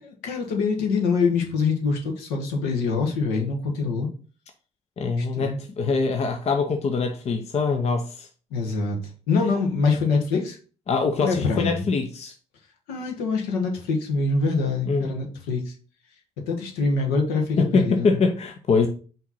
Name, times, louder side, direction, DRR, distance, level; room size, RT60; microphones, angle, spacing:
voice 1, 0.0-4.1 5.2-5.6 8.5-9.0 9.3-10.6 11.2-11.8 12.9-15.7 16.4-18.2, left 4 dB, 70° left, 1.3 m, -24 dB
voice 2, 5.0-8.3 10.9-12.3 14.9-15.2 17.6-18.9, left 4 dB, 45° left, 0.7 m, -24 dB
5.7 x 3.0 x 5.5 m
hypercardioid pair, 45°, 16 cm